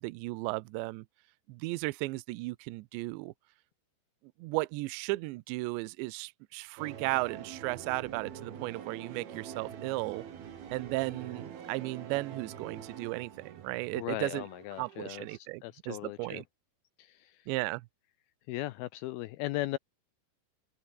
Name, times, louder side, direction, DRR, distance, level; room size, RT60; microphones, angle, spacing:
voice 1, 0.0-1.0 1.5-3.3 4.4-10.2 10.7-14.4 14.8-16.4 17.5-17.9, right 22 dB, 80° right, 2.9 m, -35 dB
sound 1, 6.8-15.4, right 8 dB, 60° right, 4.7 m, -46 dB
voice 2, 14.0-16.4 17.0-17.5 18.5-19.8, left 17 dB, 90° left, 2.1 m, -38 dB
open air
omnidirectional pair, 5.2 m